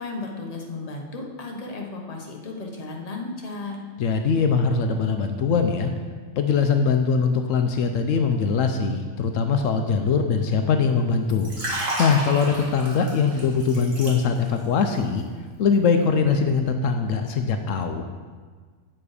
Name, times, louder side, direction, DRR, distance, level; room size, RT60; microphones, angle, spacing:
voice 1, 0.0-3.8, left 3 dB, 30° left, 0 dB, 1.2 m, -34 dB
voice 2, 4.0-5.9 6.4-11.5 12.0-15.2 15.6-18.0, left 5 dB, 80° left, 6 dB, 1.0 m, -22 dB
Liquid, 11.3-14.6 14.9-15.2, right 1 dB, 70° right, 2.5 m, -31 dB
8.7 x 7.1 x 4.9 m, 1.5 s
omnidirectional pair, 1.3 m